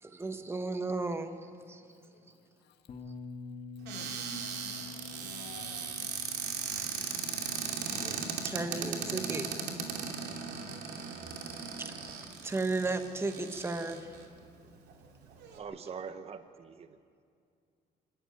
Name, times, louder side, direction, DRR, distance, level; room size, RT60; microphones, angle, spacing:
voice 1, 0.0-1.8 8.0-9.9 11.8-12.1 12.4-14.1, right 3 dB, 15° right, 1.4 m, -35 dB
voice 2, 2.0-3.0 3.8-6.1 6.5-9.4, left 8 dB, 80° left, 1.9 m, -55 dB
Bass guitar, 2.9-9.1, left 5 dB, 45° left, 2.1 m, -48 dB
Cupboard open or close, 3.8-14.2 14.9-15.0 15.2-15.6, right 6 dB, 80° right, 2.6 m, -38 dB
voice 3, 15.6-17.0, right 6 dB, 35° right, 1.0 m, -43 dB
26.0 x 13.0 x 9.3 m
cardioid pair, 110°, 17 cm